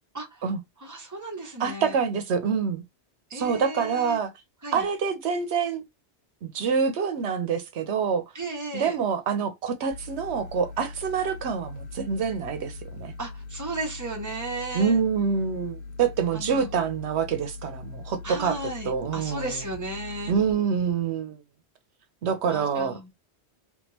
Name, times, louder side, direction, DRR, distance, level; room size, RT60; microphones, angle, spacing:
voice 1, 0.8-2.0 3.3-4.2 4.6-4.8 8.3-8.9 13.2-15.0 16.3-16.7 18.2-20.3 22.5-23.1, right 2 dB, 15° right, 1.1 m, -35 dB
voice 2, 1.6-2.8 3.3-4.3 4.7-5.8 6.4-8.3 8.7-13.1 14.7-18.6 18.8-19.6 20.3-21.4 22.2-23.0, right 6 dB, 80° right, 0.9 m, -26 dB
sound 1, 9.9-20.5, left 3 dB, 65° left, 0.7 m, -41 dB
3.6 x 2.5 x 2.7 m
omnidirectional pair, 1.1 m